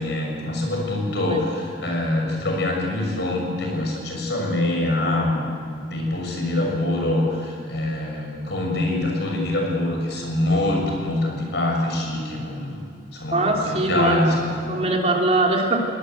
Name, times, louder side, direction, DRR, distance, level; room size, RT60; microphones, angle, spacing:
voice 1, 0.0-12.8 13.1-14.8, left 1 dB, 65° left, 1 dB, 6.7 m, -24 dB
voice 2, 13.3-14.4 14.7-15.8, right 2 dB, 35° right, 0 dB, 3.1 m, -21 dB
21.5 x 19.5 x 8.0 m, 2.4 s
head